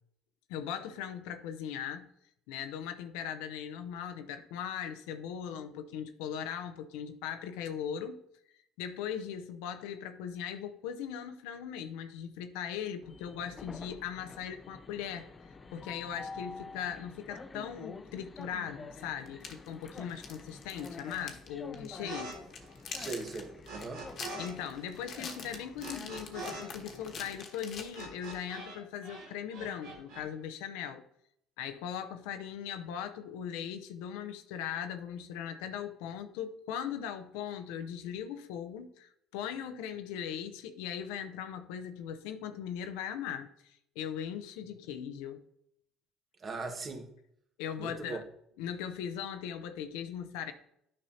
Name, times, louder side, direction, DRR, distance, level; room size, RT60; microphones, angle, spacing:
voice 1, 0.5-2.1 2.5-8.2 8.8-15.3 15.7-22.4 24.4-31.0 31.6-45.4 47.6-48.2 48.6-50.5, left 8 dB, 80° left, 8 dB, 0.6 m, -39 dB
Train, 13.0-27.4, left 3 dB, 25° left, 0.6 m, -49 dB
sound 1, 18.4-18.5 19.3-21.5 21.7-21.9 22.3-28.4, left 5 dB, 55° left, 1.2 m, -45 dB
sound 2, 22.0-22.4 22.6-24.5 24.8-28.8 29.0-30.2, right 2 dB, 85° right, 2.2 m, -44 dB
voice 2, 22.9-24.0 46.4-47.1 47.8-48.2, right 3 dB, 40° right, 4 dB, 1.4 m, -39 dB
9.7 x 5.4 x 2.8 m, 0.73 s
supercardioid pair, 75°, 0 cm